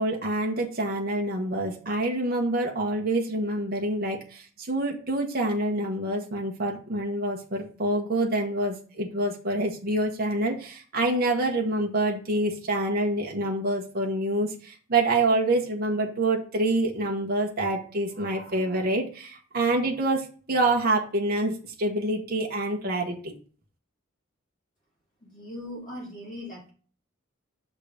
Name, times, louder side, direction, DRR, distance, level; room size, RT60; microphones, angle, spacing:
voice 1, 0.0-4.4 4.7-20.2 20.5-21.5 21.8-23.3, right 2 dB, 45° right, 1 dB, 1.1 m, -26 dB
voice 2, 25.2-26.7, left 1 dB, 40° left, -3 dB, 2.4 m, -39 dB
6.6 x 3.7 x 4.9 m, 0.40 s
head